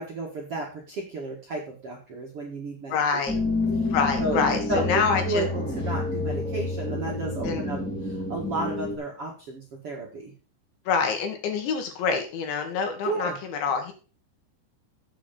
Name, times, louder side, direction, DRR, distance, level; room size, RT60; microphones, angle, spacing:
voice 1, 0.0-3.2 3.8-3.9 4.2-10.3 13.0-13.4, right 2 dB, 45° right, -2 dB, 1.9 m, -33 dB
voice 2, 2.9-3.4 3.9-5.5 7.4-7.7 10.9-13.9, left 5 dB, 75° left, 5 dB, 4.2 m, -26 dB
sound 1, 3.3-9.0, left 2 dB, 5° left, 1.3 m, -29 dB
8.5 x 8.3 x 5.4 m, 0.36 s
omnidirectional pair, 5.4 m